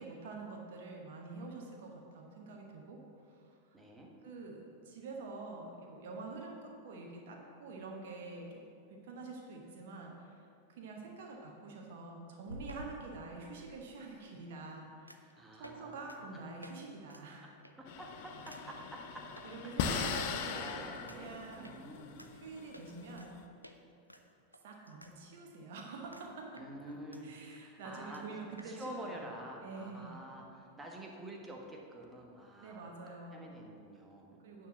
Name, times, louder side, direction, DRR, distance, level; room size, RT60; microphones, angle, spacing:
voice 1, 0.0-3.8 4.2-17.6 18.5-18.6 19.4-21.7 22.3-23.4 24.6-26.6 27.2-29.3 29.6-30.2 32.6-33.6 34.4-34.7, right 3 dB, 55° right, 0 dB, 1.1 m, -47 dB
voice 2, 3.7-4.1 15.4-16.4 17.8-19.3 19.8-22.3 26.6-27.3 27.6-32.9 33.3-34.4, right 1 dB, 10° right, 0 dB, 1.4 m, -48 dB
sound 1, 12.4-13.8 15.1-15.3 15.6-15.8 16.1-16.2 16.6-16.7 17.1-17.2 17.6-17.9 18.5-18.6 19.4-19.5 20.0-20.6 21.1-21.2 21.6-21.7 22.2-22.3 22.7-23.3 23.6-23.8 24.1-25.1 25.4-25.5 26.1-26.3 26.6-27.2 27.5-27.6 27.8-27.9 28.1-28.2 28.6-28.7, equal, 90° right, 0.5 m, -51 dB
sound 2, 17.9-23.4, left 6 dB, 50° left, 0.6 m, -39 dB
9.2 x 4.7 x 7.3 m, 2.5 s
figure-of-eight pair, 90°, 0 cm